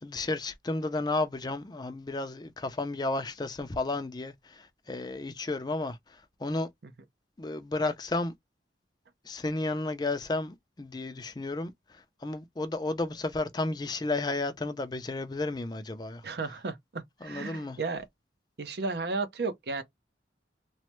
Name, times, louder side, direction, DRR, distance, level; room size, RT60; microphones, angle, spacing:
voice 1, 0.0-6.7 7.4-8.3 9.2-16.2 17.2-17.8, left 2 dB, 25° left, 0.4 m, -33 dB
voice 2, 16.2-18.1 18.6-19.8, right 3 dB, 60° right, 0.6 m, -34 dB
3.1 x 2.1 x 2.9 m
head